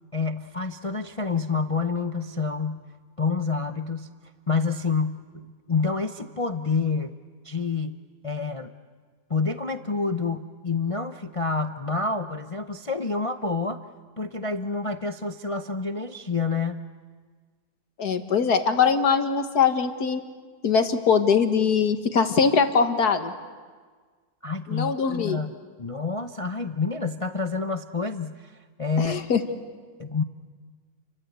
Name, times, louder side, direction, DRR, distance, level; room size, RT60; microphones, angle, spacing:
voice 1, 0.1-2.8 3.2-4.1 4.5-7.2 7.4-8.0 8.2-8.7 9.3-13.8 14.2-16.8 24.4-29.2 30.0-30.2, left 4 dB, 35° left, 8 dB, 0.5 m, -28 dB
voice 2, 18.0-20.2 20.6-23.3 24.7-25.4 29.0-29.4, left 6 dB, 65° left, 7 dB, 2.0 m, -22 dB
30.0 x 24.0 x 8.2 m, 1.5 s
omnidirectional pair, 1.8 m